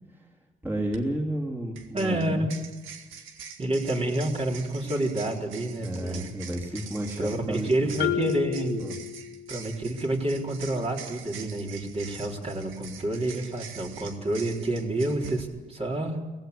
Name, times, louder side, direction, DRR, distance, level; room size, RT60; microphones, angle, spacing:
voice 1, 0.6-2.4 5.8-8.1 8.8-8.9, right 1 dB, 10° right, -2 dB, 3.1 m, -32 dB
sound 1, 0.9-1.0 1.8-15.4, right 7 dB, 85° right, 2.0 m, -45 dB
voice 2, 1.9-2.5 3.6-6.3 7.2-8.8 9.5-16.2, right 1 dB, 30° right, 0 dB, 4.0 m, -28 dB
Marimba xylophone, 8.0-9.8, left 11 dB, 60° left, 1.2 m, -31 dB
18.5 x 15.5 x 9.7 m, 1.2 s
cardioid pair, 90°, 20 cm